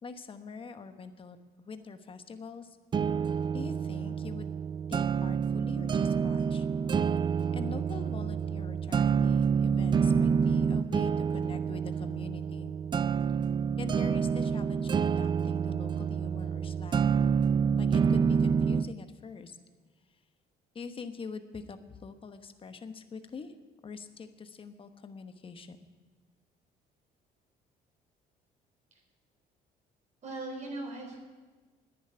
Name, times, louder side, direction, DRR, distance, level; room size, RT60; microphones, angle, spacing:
voice 1, 0.0-2.8 3.5-4.5 4.9-6.7 7.5-12.7 13.8-17.2 17.8-19.6 20.7-23.5 23.8-25.8, left 5 dB, 30° left, 9 dB, 1.1 m, -44 dB
sound 1, 2.9-18.9, right 6 dB, 25° right, 0.3 m, -28 dB
voice 2, 30.2-31.2, right 2 dB, 45° right, 2 dB, 3.9 m, -39 dB
10.5 x 10.5 x 9.8 m, 1.3 s
cardioid pair, 110°, 17 cm